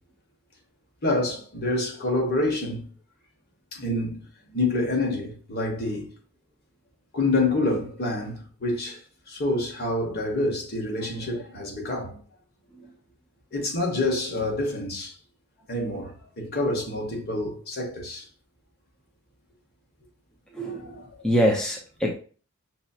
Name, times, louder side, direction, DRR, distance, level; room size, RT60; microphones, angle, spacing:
voice 1, 1.0-2.9 3.7-4.2 4.5-6.1 7.1-9.0 9.3-12.2 13.5-15.1 15.7-18.2 20.7-21.2, left 2 dB, 50° left, 1.3 m, -27 dB
voice 2, 20.5-22.1, equal, 5° left, 0.5 m, -25 dB
5.9 x 2.7 x 2.4 m
head